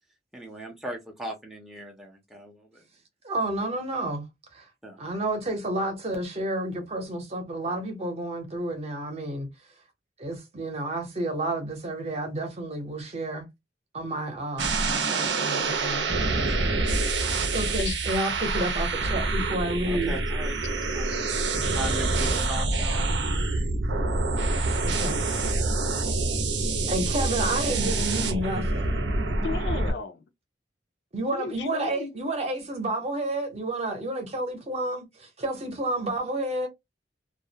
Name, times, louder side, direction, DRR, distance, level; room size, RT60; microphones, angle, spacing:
voice 1, 0.3-2.8 4.8-5.0 15.8-16.8 19.8-23.4, right 1 dB, ahead, 0.5 m, -39 dB
voice 2, 3.2-4.2 4.5-4.7 5.0-9.5 10.2-13.5 13.9-16.1 17.5-20.1 24.8-25.2 26.1-26.2 26.9-29.0 31.1-36.7, right 1 dB, 35° right, 0.7 m, -30 dB
sound 1, 14.6-29.9, right 3 dB, 80° right, 0.6 m, -26 dB
voice 3, 29.4-30.2 31.3-32.1, left 5 dB, 70° left, 0.4 m, -34 dB
2.3 x 2.0 x 2.7 m
head